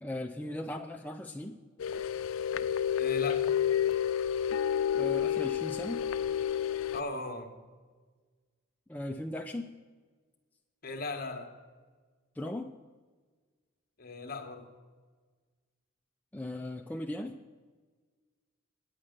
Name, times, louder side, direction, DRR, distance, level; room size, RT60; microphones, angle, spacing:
voice 1, 0.0-1.6 4.9-6.0 8.9-9.7 12.4-12.7 16.3-17.4, left 1 dB, 10° left, 3 dB, 0.4 m, -38 dB
sound 1, 1.8-7.0, left 9 dB, 85° left, 0.4 m, -30 dB
voice 2, 3.0-3.5 6.9-7.5 10.8-11.6 14.0-14.7, left 3 dB, 50° left, 6 dB, 1.2 m, -38 dB
8.8 x 8.6 x 6.4 m, 1.4 s
head